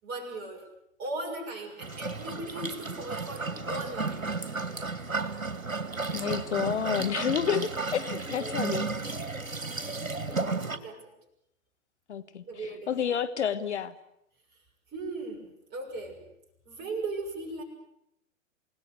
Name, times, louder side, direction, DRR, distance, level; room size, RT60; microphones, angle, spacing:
voice 1, 0.0-0.7 1.0-4.4 8.3-8.5 9.9-11.1 12.5-12.9 14.9-16.2 16.6-17.6, right 2 dB, 25° right, 1 dB, 6.8 m, -38 dB
sound 1, 1.8-10.8, right 3 dB, 75° right, 2.4 m, -33 dB
voice 2, 6.1-8.9 12.1-12.4 12.9-13.9, left 8 dB, 55° left, 10 dB, 1.5 m, -29 dB
29.0 x 18.5 x 8.2 m, 0.81 s
figure-of-eight pair, 110°, 40 cm